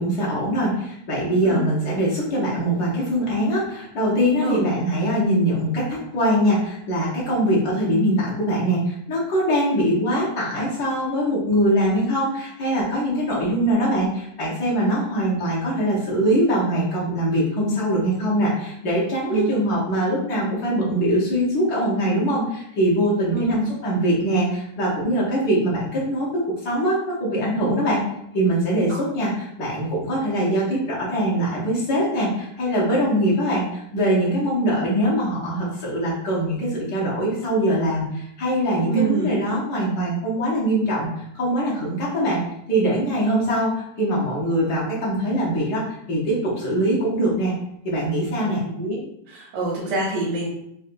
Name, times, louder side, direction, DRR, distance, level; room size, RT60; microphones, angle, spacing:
voice 1, 0.0-28.0 28.3-42.4 42.7-47.5 47.8-48.6, right 1 dB, 70° left, -6 dB, 1.3 m, -22 dB
voice 2, 38.9-39.3 48.4-49.0 49.3-50.5, right 4 dB, 85° right, -5 dB, 1.3 m, -25 dB
4.1 x 2.2 x 2.5 m, 0.76 s
omnidirectional pair, 1.8 m